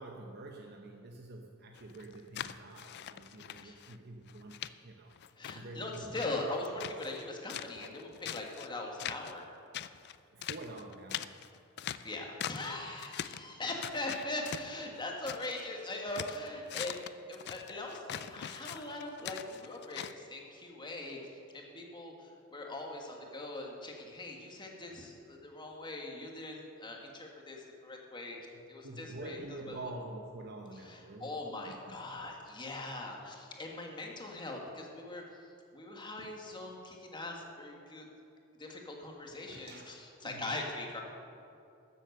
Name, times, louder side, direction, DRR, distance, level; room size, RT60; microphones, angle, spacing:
voice 1, 0.0-5.1 5.5-6.3 10.3-11.4 28.5-31.4 31.7-32.3 39.5-40.0 40.2-40.6, right 2 dB, 50° right, 2 dB, 0.8 m, -47 dB
sound 1, 1.8-4.0 4.3-4.7 5.1-7.2 7.5-8.7 9.0-9.4 9.7-12.7 13.0-13.5 13.8-15.6 15.9-20.1, left 10 dB, 55° left, 0.4 m, -42 dB
voice 2, 5.4-9.4 12.0-17.0 17.3-28.4 28.7-29.9 30.7-38.1 38.6-41.0, left 2 dB, 20° left, 0 dB, 1.6 m, -41 dB
13.5 x 7.8 x 6.5 m, 2.6 s
head